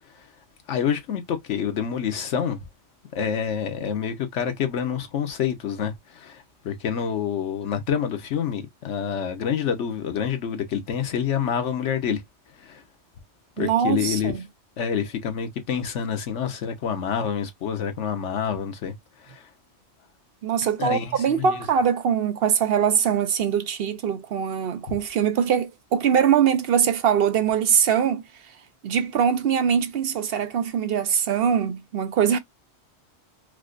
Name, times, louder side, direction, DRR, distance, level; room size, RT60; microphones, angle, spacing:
voice 1, 0.7-2.6 3.1-12.2 12.6-12.8 13.6-14.3 14.8-18.9 19.2-19.5 20.8-21.6, left 8 dB, 90° left, 1.2 m, -27 dB
voice 2, 13.6-14.4 20.4-28.2 28.8-32.4, right 8 dB, 65° right, 0.7 m, -22 dB
4.8 x 2.1 x 2.4 m
omnidirectional pair, 1.2 m